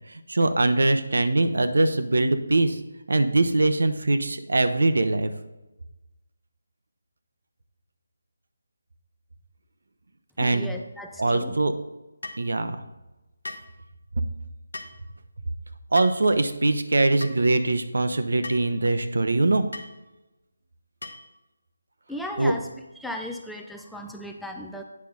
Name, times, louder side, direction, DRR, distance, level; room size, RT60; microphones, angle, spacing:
voice 1, 0.1-2.8 3.1-5.3 10.4-10.7 11.2-11.7 12.4-12.8 15.9-19.6 22.4-22.5, right 2 dB, 70° right, 9 dB, 0.7 m, -22 dB
voice 2, 10.4-11.5 22.1-22.7 23.0-24.8, left 1 dB, ahead, 2 dB, 0.4 m, -36 dB
sound 1, 12.2-12.5 13.4-13.7 14.7-15.0 15.9-16.2 17.2-17.4 18.4-18.7 19.7-19.9 21.0-21.3, left 2 dB, 75° left, 0.8 m, -38 dB
8.5 x 5.6 x 3.8 m, 1.0 s
figure-of-eight pair, 155°, 0 cm